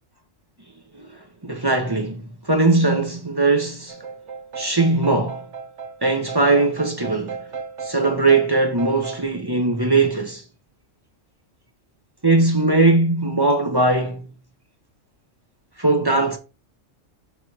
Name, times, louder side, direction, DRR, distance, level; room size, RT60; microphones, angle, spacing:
voice 1, 1.0-4.0 4.6-5.4 6.0-7.4 7.8-10.4 12.2-14.3 15.8-16.4, right 2 dB, 20° right, 0.9 m, -20 dB
sound 1, 3.9-9.2, right 5 dB, 65° right, 1.4 m, -35 dB
7.2 x 2.9 x 4.7 m
omnidirectional pair, 1.3 m